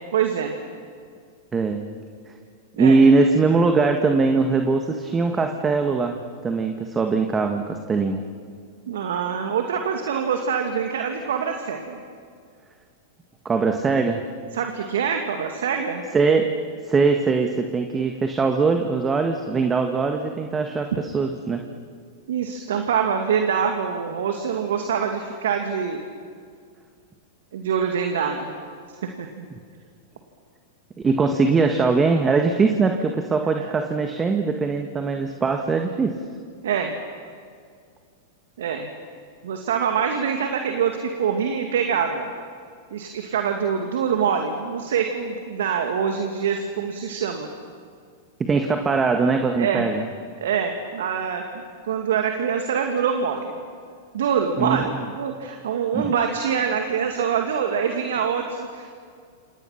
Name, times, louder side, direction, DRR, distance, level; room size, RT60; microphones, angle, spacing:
voice 1, 0.1-0.5 2.8-3.0 8.9-12.0 14.5-16.1 22.3-26.0 27.5-28.5 29.0-29.5 33.6-33.7 36.6-37.0 38.6-38.9 39.4-42.3 42.9-47.5 49.6-49.9 50.4-51.4 51.8-53.6 54.1-59.1, right 7 dB, 70° right, 4 dB, 2.3 m, -25 dB
voice 2, 1.5-1.9 2.8-8.2 13.5-14.2 16.1-16.6 16.9-21.6 31.0-36.2 48.5-50.1 54.6-55.0 55.9-56.1, right 4 dB, 20° right, 4 dB, 1.8 m, -21 dB
28.0 x 28.0 x 5.9 m, 2.1 s
hypercardioid pair, 105°, 0 cm